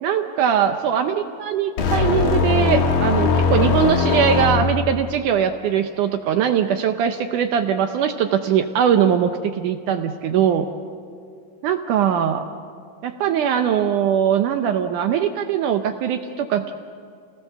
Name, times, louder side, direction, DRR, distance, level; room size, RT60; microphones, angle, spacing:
voice 1, 0.0-10.7 11.6-12.5 13.0-16.7, right 8 dB, 75° right, 7 dB, 2.1 m, -21 dB
sound 1, 1.8-5.0, left 5 dB, 75° left, 3.7 m, -20 dB
29.0 x 18.5 x 6.8 m, 2.2 s
omnidirectional pair, 4.1 m